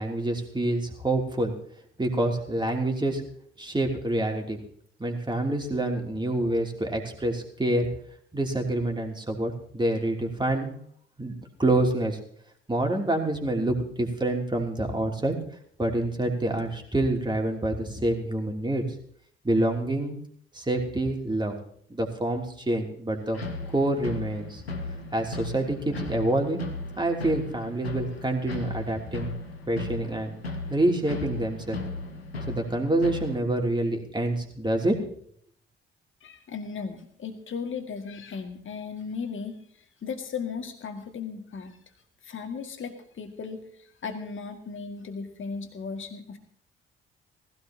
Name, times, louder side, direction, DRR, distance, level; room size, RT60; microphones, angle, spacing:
voice 1, 0.0-1.5 2.0-3.2 3.6-4.6 5.0-7.9 8.3-10.7 11.2-11.3 11.6-12.2 12.7-15.3 15.8-18.8 19.4-20.2 20.5-21.5 21.9-23.4 23.7-24.6 25.1-26.6 27.0-29.3 29.6-30.3 30.7-31.8 32.5-35.0, right 1 dB, 15° right, 2 dB, 2.9 m, -27 dB
sound 1, 23.3-33.4, left 2 dB, 85° left, 1.1 m, -36 dB
voice 2, 36.2-39.6 40.0-41.8 42.2-46.4, left 5 dB, 40° left, 6 dB, 2.1 m, -36 dB
19.0 x 16.0 x 2.9 m, 0.63 s
figure-of-eight pair, 45°, 30 cm